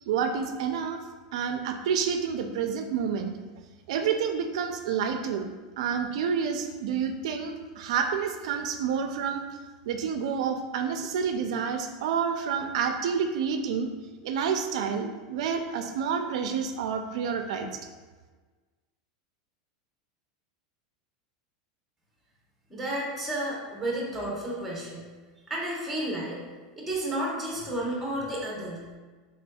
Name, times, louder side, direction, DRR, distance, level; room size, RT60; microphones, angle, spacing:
voice 1, 0.1-1.0 1.3-3.3 3.9-5.5 5.8-9.4 9.9-13.9 14.2-17.7, right 6 dB, 75° right, 6 dB, 0.3 m, -29 dB
voice 2, 22.7-25.0 25.5-26.4 26.8-28.8, right 1 dB, 5° right, -3 dB, 0.8 m, -32 dB
4.1 x 3.7 x 2.3 m, 1.4 s
supercardioid pair, 160°, 3 cm